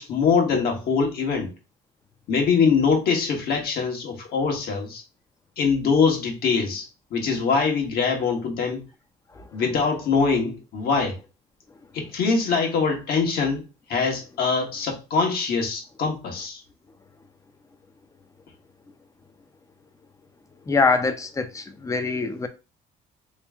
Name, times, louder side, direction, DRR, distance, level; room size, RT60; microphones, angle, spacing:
voice 1, 0.0-1.5 2.3-5.0 5.6-8.8 9.5-11.2 11.9-16.6, left 5 dB, 65° left, 1.3 m, -23 dB
voice 2, 20.7-22.5, left 4 dB, 20° left, 0.6 m, -24 dB
3.1 x 3.1 x 3.5 m
cardioid pair, 110°, 17 cm